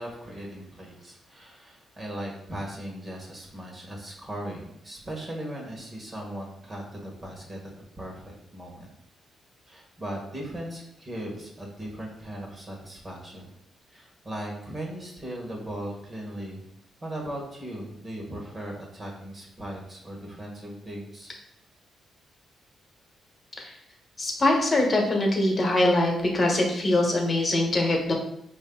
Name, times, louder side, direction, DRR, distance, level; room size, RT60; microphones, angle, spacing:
voice 1, 0.0-7.7 8.0-8.9 9.7-13.5 13.9-16.6 17.0-21.3, right 1 dB, 30° right, -1 dB, 1.4 m, -38 dB
voice 2, 24.2-28.1, left 1 dB, 35° left, 1 dB, 1.2 m, -23 dB
5.1 x 2.7 x 3.7 m, 0.75 s
cardioid pair, 90°, 0 cm